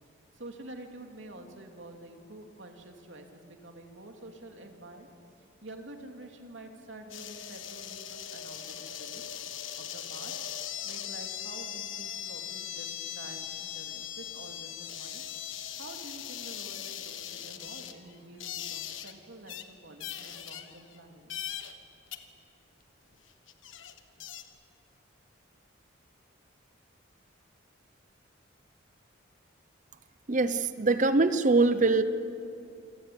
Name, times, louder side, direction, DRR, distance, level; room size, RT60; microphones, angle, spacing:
voice 1, 0.3-5.1 5.4-9.2 9.8-10.3 10.8-15.2 15.8-18.4 18.7-21.3, right 1 dB, 70° right, 3 dB, 2.7 m, -48 dB
sound 1, 7.1-19.1 19.5-19.6 20.0-21.0 21.3-21.8 22.1-22.2 23.1-23.2 23.5-24.4, left 10 dB, 80° left, 1.4 m, -40 dB
voice 2, 30.3-32.0, right 3 dB, 40° right, 12 dB, 0.7 m, -23 dB
27.5 x 16.5 x 9.8 m, 2.7 s
head